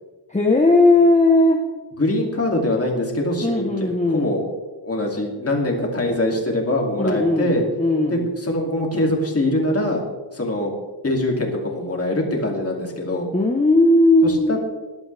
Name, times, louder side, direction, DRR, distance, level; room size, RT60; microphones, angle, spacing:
voice 1, 0.3-1.6 3.4-4.3 7.0-8.3 13.3-14.6, left 2 dB, 15° left, 0 dB, 1.1 m, -17 dB
voice 2, 2.0-4.4 4.8-7.6 8.1-10.0 10.3-10.7 11.0-13.3 14.2-14.6, left 1 dB, 30° left, 0 dB, 2.8 m, -23 dB
19.0 x 12.0 x 3.4 m, 1.3 s
wide cardioid pair, 165°, 45 cm